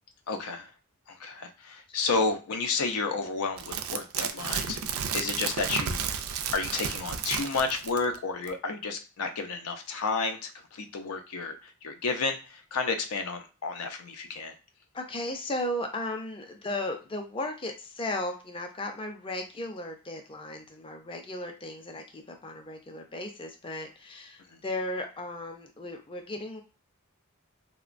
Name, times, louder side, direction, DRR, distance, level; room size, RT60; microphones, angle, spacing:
voice 1, 0.3-0.7 1.1-4.8 5.1-6.1 6.5-14.5 24.5-24.6, left 4 dB, 90° left, 5 dB, 0.5 m, -31 dB
sound 1, 3.6-8.2 8.5-8.6, right 7 dB, 70° right, 0.3 m, -32 dB
voice 2, 14.9-26.6, left 1 dB, 25° left, 4 dB, 0.4 m, -35 dB
2.8 x 2.1 x 2.5 m, 0.34 s
head